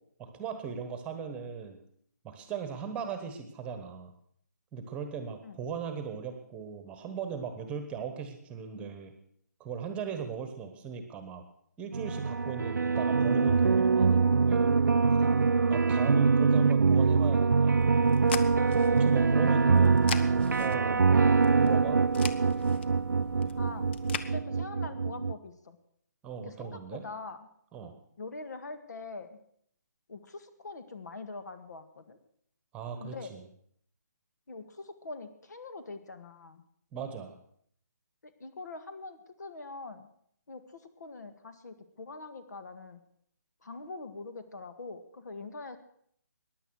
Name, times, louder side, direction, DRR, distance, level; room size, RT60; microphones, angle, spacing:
voice 1, 0.2-1.8 2.2-4.1 4.7-9.1 9.6-11.4 11.8-14.7 15.7-17.8 18.9-20.0 20.6-21.0 21.5-22.0 26.2-27.0 27.7-27.9 32.7-33.4 36.9-37.3, right 6 dB, 10° right, 8 dB, 1.2 m, -38 dB
sound 1, 11.9-25.3, right 4 dB, 85° right, 0.5 m, -24 dB
sound 2, 17.8-24.3, left 7 dB, 35° left, 0.8 m, -42 dB
voice 2, 23.6-23.9 24.2-25.8 26.4-27.5 28.2-29.4 30.1-32.2 33.0-33.3 34.5-36.6 38.2-40.1 40.5-43.0 43.6-45.8, left 3 dB, 70° left, 9 dB, 1.8 m, -43 dB
15.5 x 10.5 x 6.4 m, 0.66 s
hypercardioid pair, 155°, 10 cm